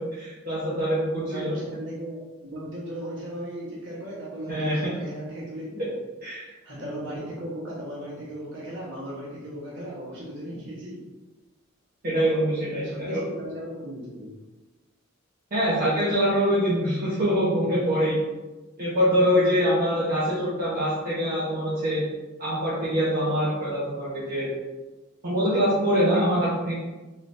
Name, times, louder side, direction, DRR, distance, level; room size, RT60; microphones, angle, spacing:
voice 1, 0.0-1.5 4.5-4.9 6.2-6.5 12.0-13.2 15.5-18.2 18.8-22.0 22.4-24.5 25.2-26.7, equal, 45° right, -10 dB, 0.9 m, -24 dB
voice 2, 1.3-6.0 6.6-11.0 12.8-14.3, right 1 dB, 65° right, -6 dB, 1.3 m, -36 dB
3.8 x 3.2 x 2.6 m, 1.2 s
head